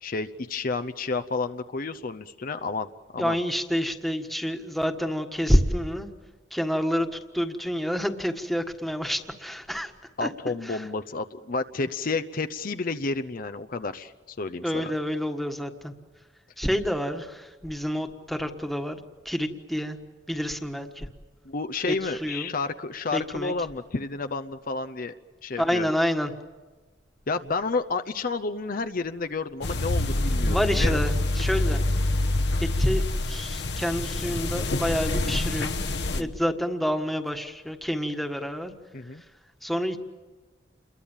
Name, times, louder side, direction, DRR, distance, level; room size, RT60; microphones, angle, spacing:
voice 1, 0.0-2.9 3.1-3.4 10.2-14.9 21.5-25.1 25.4-25.9 27.3-31.0 36.1-36.4 38.9-39.2, left 3 dB, 50° left, 10 dB, 0.7 m, -31 dB
voice 2, 3.2-6.1 6.5-9.9 10.2-10.3 10.6-10.8 14.6-15.9 16.6-20.0 20.3-21.1 21.9-22.5 23.1-23.5 25.6-26.3 30.5-31.8 32.6-35.8 36.1-38.7 39.6-40.0, equal, ahead, 5 dB, 1.5 m, -28 dB
sound 1, 29.6-36.2, left 2 dB, 70° left, 1.2 m, -26 dB
29.0 x 22.5 x 7.4 m, 1.3 s
head